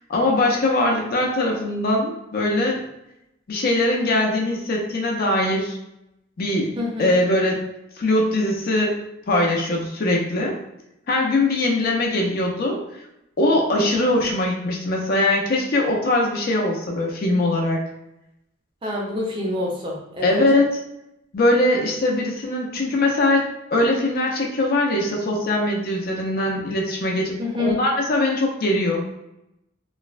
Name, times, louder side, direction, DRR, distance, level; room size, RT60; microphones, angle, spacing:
voice 1, 0.1-2.8 3.5-5.8 6.4-7.6 8.0-9.0 9.3-10.6 11.1-12.8 13.4-17.8 20.2-20.8 21.3-29.0, left 1 dB, 50° left, 0 dB, 0.5 m, -21 dB
voice 2, 6.8-7.2 13.8-14.1 18.8-20.4 27.4-27.8, left 2 dB, 25° right, -3 dB, 0.6 m, -27 dB
3.1 x 2.0 x 2.4 m, 0.86 s
head